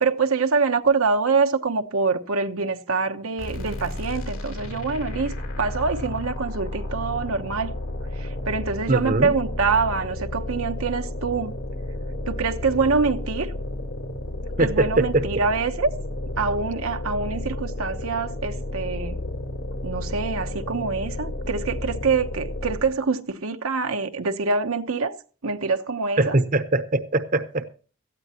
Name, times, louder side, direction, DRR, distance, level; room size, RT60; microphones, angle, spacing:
voice 1, 0.0-5.3 5.6-7.7 8.1-11.6 12.3-13.5 14.6-15.9 16.4-19.2 19.8-25.2 25.4-26.4, right 4 dB, 85° right, 1.0 m, -25 dB
sound 1, 3.4-23.0, left 1 dB, 70° left, 3.0 m, -32 dB
voice 2, 8.9-9.3 14.6-15.2 26.2-27.7, right 2 dB, 40° right, 0.8 m, -22 dB
17.5 x 13.5 x 2.9 m
head